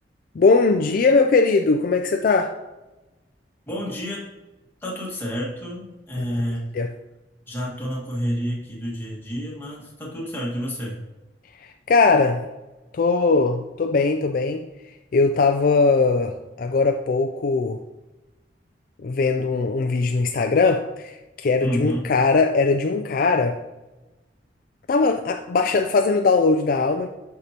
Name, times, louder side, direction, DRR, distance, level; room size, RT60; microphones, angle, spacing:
voice 1, 0.4-2.5 6.2-6.3 6.7-6.9 11.9-12.4 12.9-14.7 15.1-17.8 19.0-23.6 24.9-27.1, left 4 dB, 50° left, 5 dB, 0.4 m, -20 dB
voice 2, 3.7-4.3 4.8-6.7 7.5-11.0 21.6-22.1, equal, 10° left, -4 dB, 1.7 m, -29 dB
11.5 x 4.7 x 2.9 m, 1.1 s
head